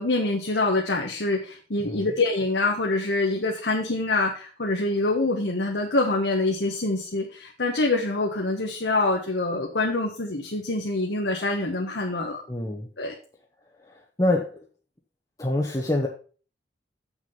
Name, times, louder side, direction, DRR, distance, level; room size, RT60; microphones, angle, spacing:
voice 1, 0.0-12.4 13.0-13.1, left 2 dB, 75° left, 0 dB, 1.3 m, -25 dB
voice 2, 12.5-12.9 13.9-14.6 15.4-16.1, left 1 dB, 20° left, -1 dB, 0.9 m, -26 dB
7.5 x 6.2 x 5.5 m, 0.39 s
head